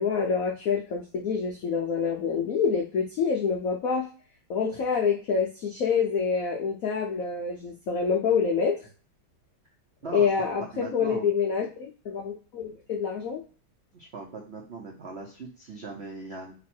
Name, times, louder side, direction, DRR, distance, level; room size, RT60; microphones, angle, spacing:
voice 1, 0.0-4.1 4.5-8.8 10.1-13.4, left 6 dB, 85° left, 1 dB, 0.7 m, -27 dB
voice 2, 10.7-11.3 13.9-16.5, right 3 dB, 85° right, 0 dB, 0.5 m, -39 dB
3.1 x 3.0 x 4.3 m, 0.38 s
omnidirectional pair, 2.3 m